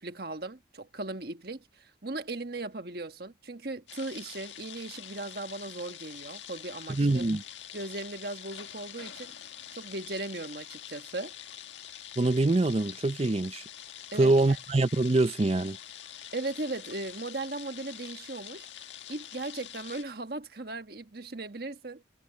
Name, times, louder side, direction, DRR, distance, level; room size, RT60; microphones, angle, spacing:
voice 1, 0.0-7.3 7.7-9.3 9.7-11.3 14.1-14.6 16.3-18.7 19.1-22.0, right 2 dB, 55° right, 1.4 m, -38 dB
sound 1, 3.9-20.0, left 10 dB, 90° left, 1.8 m, -45 dB
voice 2, 6.9-7.4 12.2-13.6 14.2-15.8, right 2 dB, 30° right, 0.5 m, -24 dB
head